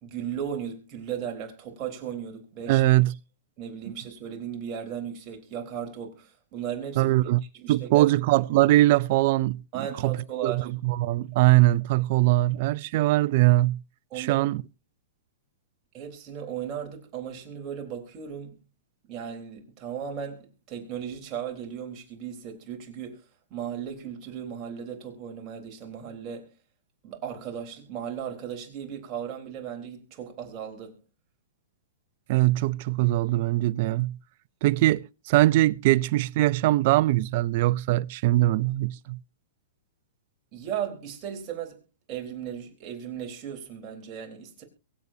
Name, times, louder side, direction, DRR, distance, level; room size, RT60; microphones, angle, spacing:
voice 1, 0.0-2.8 3.6-7.1 7.5-8.1 9.7-10.7 14.1-14.5 15.9-18.6 19.1-23.2 23.5-26.5 27.0-31.0 40.5-41.8 42.1-44.6, right 8 dB, 35° right, 3.8 m, -36 dB
voice 2, 2.7-3.1 7.0-9.6 10.0-10.2 10.4-13.8 14.2-14.6 32.3-34.2 34.6-39.2, right 17 dB, 50° right, 0.5 m, -22 dB
23.0 x 8.1 x 2.7 m
hypercardioid pair, 140°, 0 cm